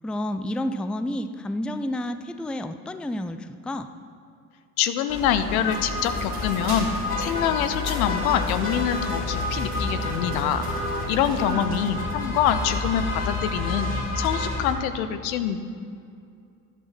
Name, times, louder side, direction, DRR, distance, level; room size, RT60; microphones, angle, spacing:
voice 1, 0.0-3.9 11.5-11.9, left 1 dB, ahead, 10 dB, 0.5 m, -30 dB
voice 2, 4.8-6.9 7.2-10.6 11.1-13.9 14.2-15.6, left 9 dB, 65° left, 10 dB, 1.1 m, -25 dB
sound 1, 5.1-14.8, left 2 dB, 35° left, 4.2 m, -29 dB
sound 2, 5.7-11.5, right 2 dB, 85° right, 3.2 m, -41 dB
13.0 x 11.5 x 5.9 m, 2.4 s
hypercardioid pair, 65°, 45 cm